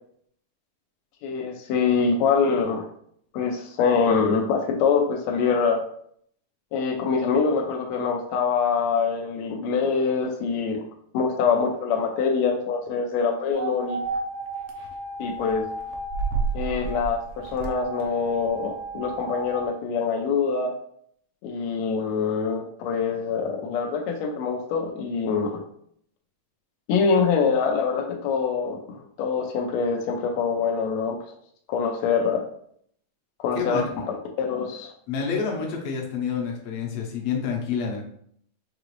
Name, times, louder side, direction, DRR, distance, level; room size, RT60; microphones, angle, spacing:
voice 1, 1.2-2.8 3.3-5.8 6.7-10.8 11.1-14.0 15.2-15.7 16.5-20.7 21.4-25.6 26.9-31.2 31.7-32.4 33.4-34.9, left 5 dB, 90° left, 1 dB, 1.5 m, -24 dB
sound 1, 13.5-19.7, right 4 dB, 75° right, 1.6 m, -32 dB
voice 2, 33.5-34.1 35.1-38.0, left 6 dB, 70° left, 0 dB, 1.7 m, -28 dB
5.6 x 2.5 x 3.0 m, 0.65 s
omnidirectional pair, 3.7 m